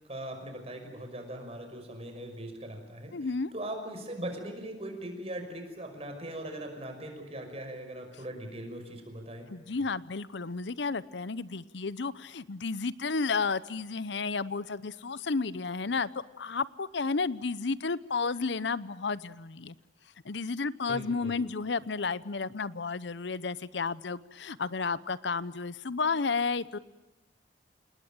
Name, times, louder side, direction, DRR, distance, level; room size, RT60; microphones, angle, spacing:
voice 1, 0.1-9.5 20.9-21.4, right 1 dB, 35° right, 5 dB, 5.7 m, -40 dB
voice 2, 3.1-3.5 9.5-16.1 16.4-19.7 20.2-26.8, left 4 dB, 75° left, 18 dB, 0.8 m, -32 dB
28.5 x 19.5 x 9.0 m, 1.1 s
head